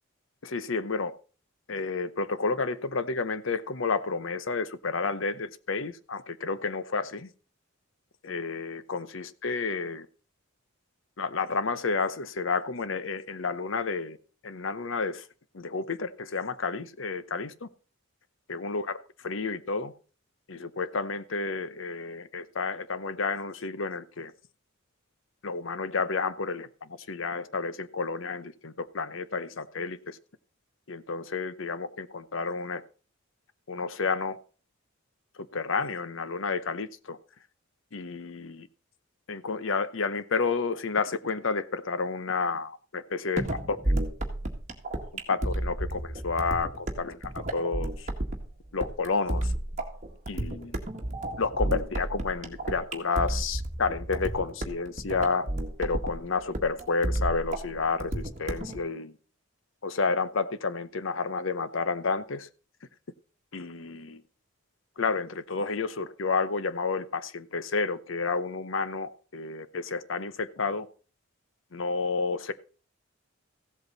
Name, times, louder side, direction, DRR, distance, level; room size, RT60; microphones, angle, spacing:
voice 1, 0.4-1.1 1.7-7.3 8.2-10.1 11.2-14.2 14.4-15.3 15.5-17.7 18.5-19.0 19.2-19.9 20.5-24.3 25.4-30.2 30.9-32.8 33.7-34.4 35.5-37.2 37.9-38.7 39.3-43.9 45.3-48.1 48.7-49.5 50.3-50.8 51.4-55.5 55.8-59.2 59.8-62.5 63.5-64.2 65.0-70.9 71.7-72.5, left 4 dB, 70° left, 0.8 m, -30 dB
sound 1, 43.4-58.8, right 1 dB, 35° right, 1.9 m, -32 dB
15.0 x 8.1 x 4.1 m
head